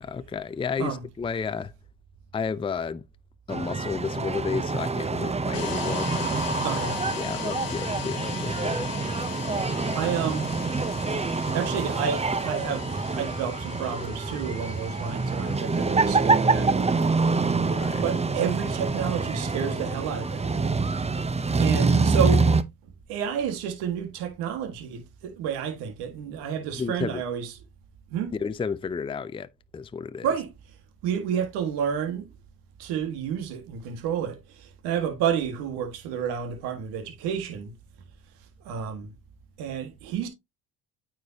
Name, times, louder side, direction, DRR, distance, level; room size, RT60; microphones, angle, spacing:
voice 1, 0.0-1.7 2.3-3.0 3.5-6.3 7.2-8.9 9.8-10.1 17.7-18.0 26.8-27.2 28.3-30.3, left 5 dB, 15° left, 0.5 m, -32 dB
sound 1, 3.5-22.6, right 4 dB, 15° right, 0.8 m, -26 dB
sound 2, 5.5-21.1, left 13 dB, 60° left, 1.5 m, -40 dB
voice 2, 6.6-7.0 9.9-10.5 11.5-17.3 18.0-20.8 21.6-22.5 23.1-27.5 28.1-28.4 30.2-30.5 31.0-32.3 32.8-37.7 38.6-39.1 39.6-40.3, right 8 dB, 80° right, 1.8 m, -30 dB
9.1 x 5.0 x 2.8 m
supercardioid pair, 70°, 39 cm